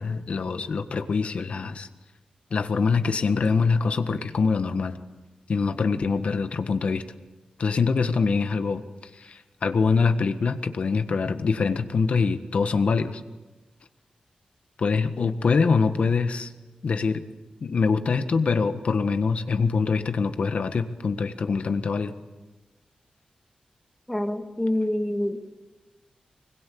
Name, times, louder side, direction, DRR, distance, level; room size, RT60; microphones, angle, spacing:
voice 1, 0.0-1.9 2.5-5.0 5.5-7.0 7.6-8.8 9.1-13.2 14.8-16.5 16.8-17.2 17.6-22.1, left 4 dB, 55° left, 9 dB, 1.5 m, -24 dB
voice 2, 24.1-25.4, left 1 dB, 10° left, 5 dB, 2.3 m, -26 dB
25.0 x 22.0 x 8.6 m, 1.2 s
wide cardioid pair, 145°, 2 cm